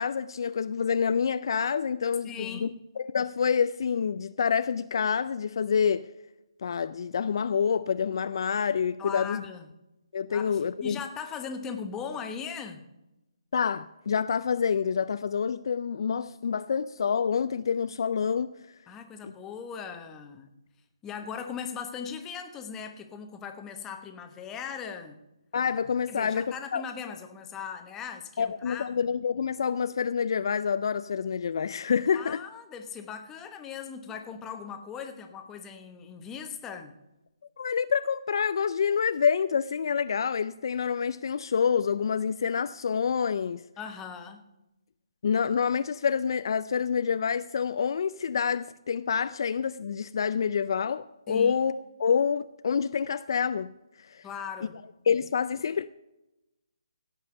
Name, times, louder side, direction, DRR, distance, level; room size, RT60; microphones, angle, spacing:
voice 1, 0.0-2.7 3.0-6.1 6.6-9.4 10.1-11.0 13.5-18.5 19.2-19.3 25.5-26.8 28.4-32.4 37.6-43.6 45.2-51.7 52.0-53.7 54.1-54.2 55.1-55.9, left 6 dB, 55° left, 0.4 m, -27 dB
voice 2, 2.2-2.8 9.0-9.7 10.3-12.9 18.9-20.5 21.0-25.2 26.1-28.9 32.1-36.9 43.8-44.4 51.3-51.6 54.2-54.8, left 6 dB, 10° left, 1.0 m, -39 dB
16.5 x 5.5 x 6.9 m
hypercardioid pair, 160°, 3 cm